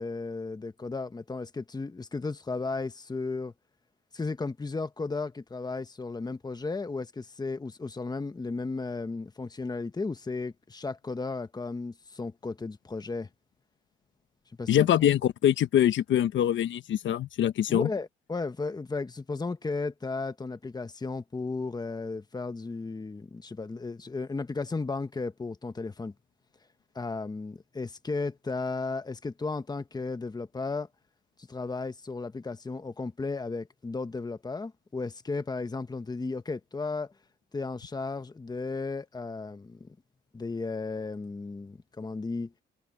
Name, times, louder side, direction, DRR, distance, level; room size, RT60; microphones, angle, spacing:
voice 1, 0.0-3.5 4.1-13.3 14.6-15.1 17.7-26.1 26.9-30.9 31.5-37.1 37.5-39.9 40.3-42.5, left 3 dB, 20° left, 1.2 m, -34 dB
voice 2, 14.7-17.9, left 11 dB, 70° left, 1.2 m, -24 dB
cardioid pair, 90°, 20 cm